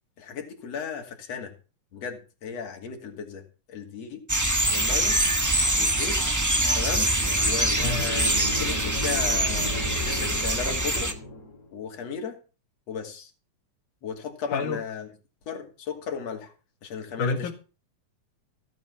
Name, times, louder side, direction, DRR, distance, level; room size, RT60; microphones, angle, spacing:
voice 1, 0.2-1.5 1.9-4.2 4.7-5.2 5.7-6.2 6.8-7.1 7.4-8.3 8.6-11.2 11.7-12.4 12.9-13.3 14.0-15.1 15.5-16.5 16.8-17.5, left 6 dB, 55° left, 3 dB, 3.7 m, -35 dB
sound 1, 4.3-11.1, right 1 dB, 20° right, 0.4 m, -24 dB
sound 2, 6.8-11.7, left 2 dB, 30° left, 2.8 m, -36 dB
voice 2, 14.5-14.8 17.2-17.5, left 4 dB, 80° left, 2 dB, 3.2 m, -28 dB
16.0 x 9.0 x 5.7 m, 0.34 s
omnidirectional pair, 3.5 m